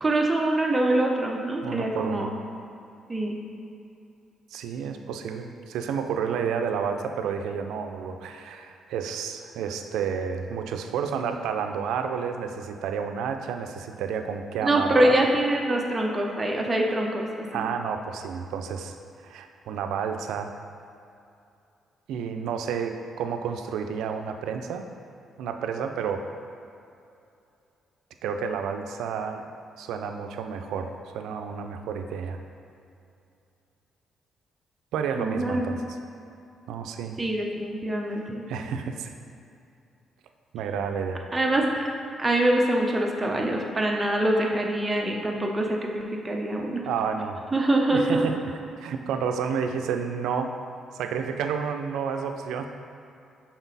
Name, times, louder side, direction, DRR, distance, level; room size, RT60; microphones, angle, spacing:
voice 1, 0.0-2.3 3.1-3.4 14.6-17.7 35.2-35.7 37.2-38.5 41.3-41.9 42.2-46.8 47.5-48.3, right 1 dB, 20° right, 0 dB, 0.7 m, -24 dB
voice 2, 1.6-2.4 4.5-15.2 17.5-19.0 19.2-20.5 22.1-24.8 25.4-26.2 28.2-29.4 29.8-32.4 34.9-35.8 36.7-37.2 38.5-39.1 40.5-41.2 46.8-47.4 47.9-48.4 48.8-50.6 50.9-52.7, right 6 dB, 85° right, 6 dB, 0.4 m, -30 dB
6.0 x 4.1 x 4.0 m, 2.6 s
cardioid pair, 90°, 0 cm